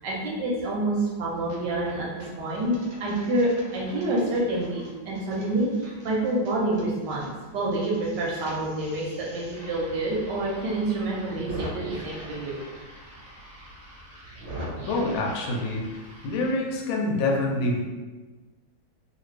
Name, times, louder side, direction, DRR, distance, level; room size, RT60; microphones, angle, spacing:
voice 1, 0.0-2.7 3.0-12.6, right 2 dB, 70° right, -4 dB, 1.1 m, -27 dB
sound 1, 1.4-1.9 2.2-7.3 7.5-16.5, right 1 dB, 55° right, 0.6 m, -42 dB
voice 2, 14.8-15.8 16.2-17.8, left 2 dB, 80° left, 0 dB, 1.4 m, -26 dB
3.1 x 2.5 x 3.1 m, 1.3 s
omnidirectional pair, 2.2 m